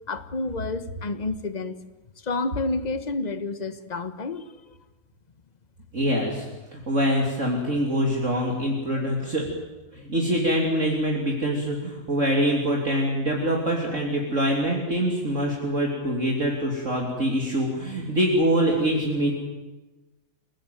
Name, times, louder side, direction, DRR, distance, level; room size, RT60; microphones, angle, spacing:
voice 1, 0.1-1.8 2.2-4.7 8.9-9.1, left 3 dB, 25° left, 12 dB, 1.2 m, -30 dB
voice 2, 5.9-6.5 6.7-9.5 9.9-19.3, equal, 40° right, -1 dB, 3.5 m, -24 dB
28.5 x 18.0 x 9.3 m, 1.1 s
omnidirectional pair, 2.1 m